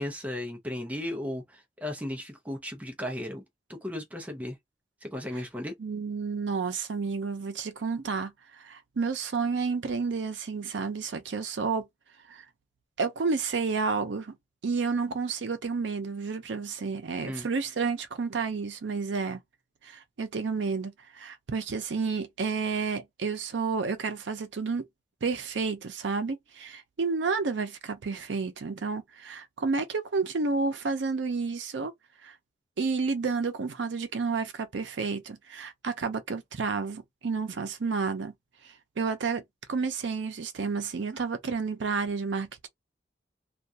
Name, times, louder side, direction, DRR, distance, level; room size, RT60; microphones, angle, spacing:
voice 1, 0.0-3.4 3.7-4.6 5.0-5.7 17.2-17.5, left 1 dB, 10° right, 0.6 m, -35 dB
voice 2, 5.8-11.9 12.3-12.4 13.0-14.4 14.6-19.4 19.8-24.8 25.2-31.9 32.2-32.3 32.8-38.3 39.0-39.4 39.7-42.7, right 4 dB, 85° right, 0.5 m, -30 dB
2.3 x 2.2 x 2.7 m
head